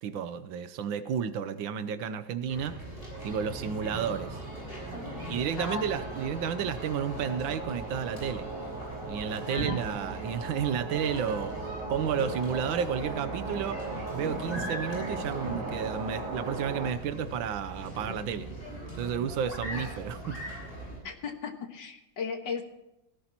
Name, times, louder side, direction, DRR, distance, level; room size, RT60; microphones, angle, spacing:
voice 1, 0.0-2.8 3.2-4.4 5.3-8.5 9.1-11.5 11.9-13.8 14.1-18.5 18.9-20.4, right 8 dB, 75° right, 12 dB, 1.5 m, -32 dB
sound 1, 2.5-21.0, right 1 dB, 25° left, 6.7 m, -40 dB
sound 2, 3.1-16.9, right 3 dB, 45° right, 1.8 m, -39 dB
voice 2, 5.6-5.9 9.5-9.9 21.0-22.6, left 5 dB, 65° left, 5 dB, 2.1 m, -36 dB
17.5 x 15.5 x 3.0 m, 0.93 s
omnidirectional pair, 2.1 m